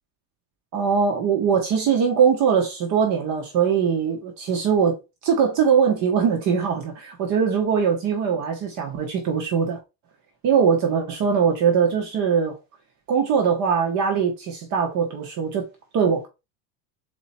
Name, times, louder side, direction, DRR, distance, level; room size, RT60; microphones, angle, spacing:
voice 1, 0.7-5.0 5.2-9.8 10.4-12.6 13.1-15.7 15.9-16.3, right 6 dB, 50° right, 1.1 m, -21 dB
4.1 x 3.0 x 4.2 m
cardioid pair, 140°, 37 cm